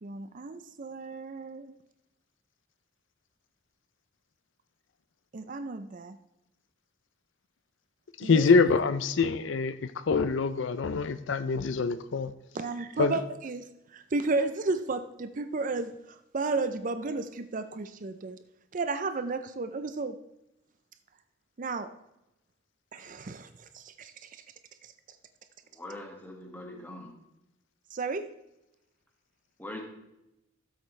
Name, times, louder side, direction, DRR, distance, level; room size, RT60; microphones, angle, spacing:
voice 1, 0.0-1.7 5.3-6.2 8.2-8.5 12.5-13.6 13.9-15.9 16.3-18.4 18.7-20.2 21.6-21.9 22.9-24.3 24.8-24.9 27.9-28.3, right 3 dB, 40° right, 10 dB, 0.5 m, -33 dB
voice 2, 8.2-12.3 13.0-13.2, left 4 dB, 65° left, 13 dB, 0.5 m, -25 dB
voice 3, 25.7-27.1 29.6-29.8, left 1 dB, 10° left, 0 dB, 1.9 m, -42 dB
13.5 x 8.0 x 3.2 m, 0.89 s
head